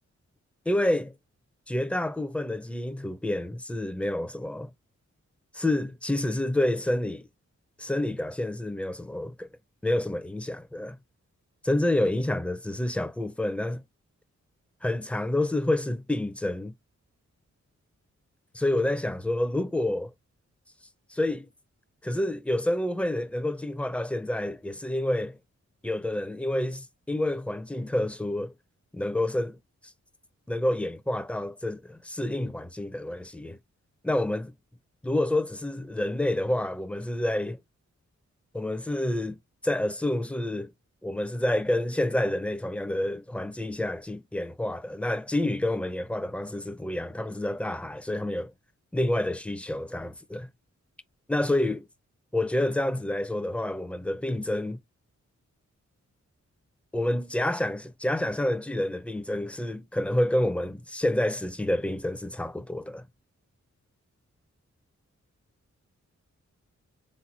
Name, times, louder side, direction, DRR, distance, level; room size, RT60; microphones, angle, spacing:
voice 1, 0.7-1.1 1.7-4.7 5.5-7.2 7.8-9.5 9.8-11.0 11.6-13.8 14.8-16.7 18.5-20.1 21.1-21.5 22.0-25.4 25.8-28.5 28.9-29.6 30.5-33.6 34.0-34.5 35.0-37.6 38.5-39.4 39.6-40.7 41.0-48.5 48.9-50.5 51.3-51.9 52.3-54.8 56.9-63.0, left 1 dB, 5° left, 0.5 m, -28 dB
4.3 x 3.8 x 2.5 m
wide cardioid pair, 95°, 29 cm